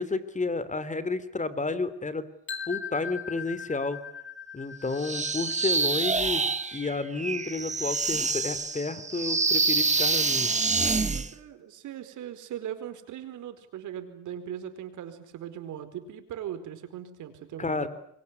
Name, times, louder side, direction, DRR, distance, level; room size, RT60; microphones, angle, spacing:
voice 1, 0.0-2.2 2.7-4.0 4.5-6.4 6.7-10.5 17.6-17.9, left 3 dB, 25° left, 15 dB, 3.2 m, -31 dB
sound 1, 2.5-8.4, left 7 dB, 40° left, 2.5 m, -41 dB
sound 2, 5.0-11.3, right 4 dB, 25° right, 1.8 m, -27 dB
voice 2, 11.1-17.9, right 10 dB, 80° right, 9 dB, 4.5 m, -39 dB
26.0 x 23.0 x 9.7 m, 0.71 s
cardioid pair, 90°, 30 cm